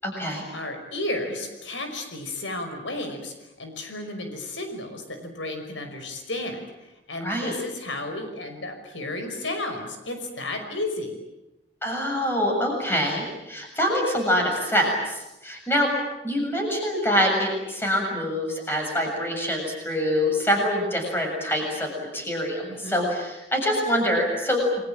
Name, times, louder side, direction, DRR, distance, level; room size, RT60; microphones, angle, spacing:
voice 1, 0.0-0.4 7.2-7.6 11.8-15.9 16.2-24.9, equal, 10° left, 1 dB, 7.4 m, -25 dB
voice 2, 0.5-11.1 22.6-23.0, left 2 dB, 85° left, 6 dB, 5.6 m, -33 dB
30.0 x 22.5 x 8.9 m, 0.95 s
head